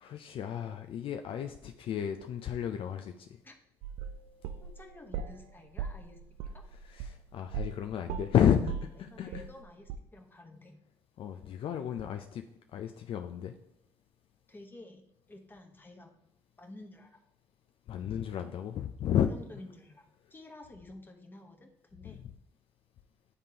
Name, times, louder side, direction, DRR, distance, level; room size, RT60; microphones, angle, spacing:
voice 1, 0.0-3.3 6.9-9.5 11.2-12.4 12.7-13.5 17.9-19.3, left 9 dB, 60° left, 6 dB, 0.4 m, -32 dB
sound 1, 3.8-5.4 5.8-7.8 8.1-9.6 9.9-10.0, right 7 dB, 80° right, 0.4 m, -38 dB
voice 2, 4.6-6.2 6.5-6.6 9.0-10.7 14.5-15.0 15.3-16.1 16.6-17.2 19.3-22.2, left 2 dB, 20° left, 4 dB, 1.0 m, -51 dB
9.5 x 3.6 x 2.8 m, 0.80 s
supercardioid pair, 65°, 10 cm